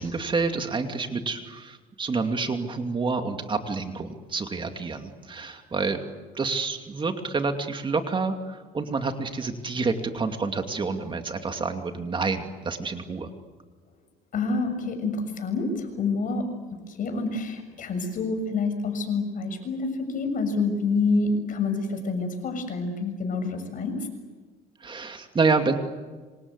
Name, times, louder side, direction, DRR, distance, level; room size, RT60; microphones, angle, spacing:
voice 1, 0.0-6.0 6.3-13.3 24.8-25.8, right 4 dB, 30° right, 5 dB, 2.6 m, -28 dB
voice 2, 14.3-16.5 17.0-23.9, left 3 dB, 50° left, 7 dB, 6.9 m, -27 dB
27.0 x 26.0 x 8.2 m, 1.3 s
cardioid pair, 110°, 17 cm